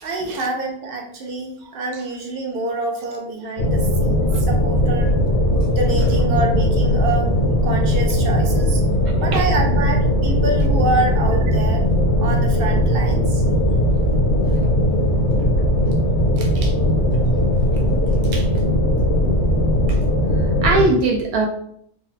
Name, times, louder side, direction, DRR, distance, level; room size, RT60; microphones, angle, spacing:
voice 1, 0.0-5.1 5.7-7.3 7.6-8.8 9.2-11.8 12.2-13.4, right 2 dB, 60° right, 1 dB, 0.6 m, -26 dB
sound 1, 3.6-20.9, equal, 65° left, 0.8 m, -18 dB
voice 2, 9.0-9.4 16.4-16.7 18.3-18.5 19.9-20.0 20.6-21.5, right 3 dB, 90° right, 1 dB, 1.2 m, -21 dB
3.8 x 2.0 x 2.8 m, 0.67 s
omnidirectional pair, 1.5 m